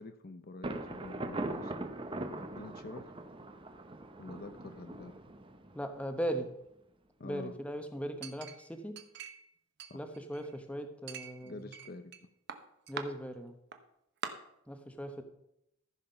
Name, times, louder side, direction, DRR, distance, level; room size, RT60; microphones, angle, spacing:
voice 1, 0.0-1.8 2.6-3.1 4.2-5.1 7.2-7.6 9.9-10.0 11.4-12.1, left 2 dB, 45° left, 9 dB, 0.6 m, -46 dB
Thunder, 0.6-6.3, right 2 dB, 25° right, 0.7 m, -41 dB
voice 2, 5.7-6.5 7.2-8.9 9.9-11.6 12.9-13.6 14.7-15.2, right 1 dB, 5° left, 6 dB, 0.9 m, -38 dB
Chink clink, 8.2-9.5 9.8-10.6 11.1-12.2 12.5-13.1 13.7-13.8 14.2-14.3, right 6 dB, 55° right, 0.9 m, -43 dB
14.5 x 5.8 x 5.7 m, 0.80 s
head